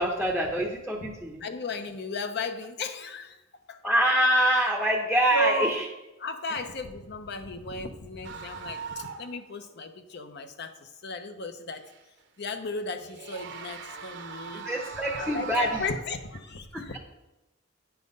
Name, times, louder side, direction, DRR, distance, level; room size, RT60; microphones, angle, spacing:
voice 1, 0.0-1.4 3.8-5.8 14.5-15.8 16.7-17.0, right 1 dB, ahead, 1 dB, 0.7 m, -25 dB
voice 2, 1.4-3.4 3.7-3.8 5.3-5.8 6.2-11.9 12.4-14.7 15.1-17.0, left 2 dB, 55° left, 8 dB, 0.7 m, -34 dB
sound 1, 8.2-9.4 9.7-9.8 11.8-12.2 13.0-16.4, right 5 dB, 60° right, 0.8 m, -40 dB
9.1 x 5.7 x 5.3 m, 1.0 s
head